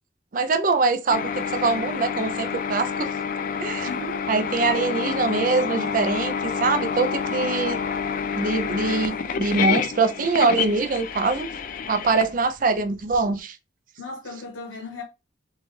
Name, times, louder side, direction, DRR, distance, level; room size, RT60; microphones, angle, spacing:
voice 1, 0.3-3.1 3.6-3.9 4.3-7.8 8.4-11.5 11.9-13.6, right 4 dB, 45° right, 0.4 m, -23 dB
sound 1, 1.1-13.2, left 6 dB, 45° left, 0.3 m, -28 dB
voice 2, 3.8-4.3 14.0-15.0, left 2 dB, 90° left, 0.9 m, -36 dB
4.3 x 2.3 x 3.1 m
head